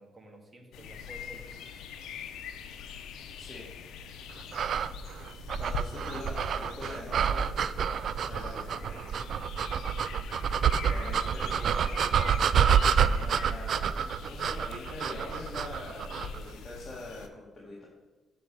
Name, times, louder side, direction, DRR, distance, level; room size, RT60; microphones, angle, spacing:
voice 1, 0.0-1.6 6.2-7.5 11.3-12.0, right 1 dB, 25° right, 2 dB, 1.8 m, -51 dB
sound 1, 0.7-17.3, left 6 dB, 80° left, 0.6 m, -43 dB
voice 2, 3.4-3.7 5.6-7.5 8.3-9.0 10.9-12.5 13.0-14.0 14.3-17.9, left 2 dB, 25° left, -5 dB, 1.8 m, -44 dB
sound 2, 4.5-16.4, right 7 dB, 60° right, 0.3 m, -28 dB
7.6 x 4.2 x 6.6 m, 1.2 s
cardioid pair, 90°, 0 cm